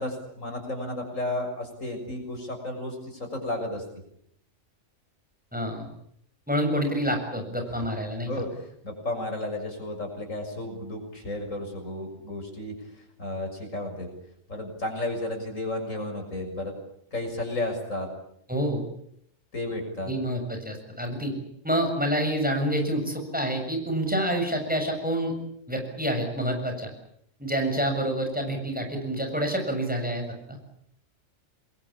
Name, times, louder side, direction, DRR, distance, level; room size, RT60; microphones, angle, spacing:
voice 1, 0.0-3.8 7.7-7.9 8.3-14.1 14.5-16.7 17.1-18.1 19.5-20.1, left 1 dB, 75° left, 4 dB, 7.0 m, -33 dB
voice 2, 5.5-5.9 6.5-8.3 18.5-18.8 20.1-21.3 21.6-25.3 25.7-26.9 27.4-30.6, equal, 5° right, 4 dB, 7.1 m, -27 dB
28.0 x 22.0 x 8.6 m, 0.72 s
omnidirectional pair, 1.4 m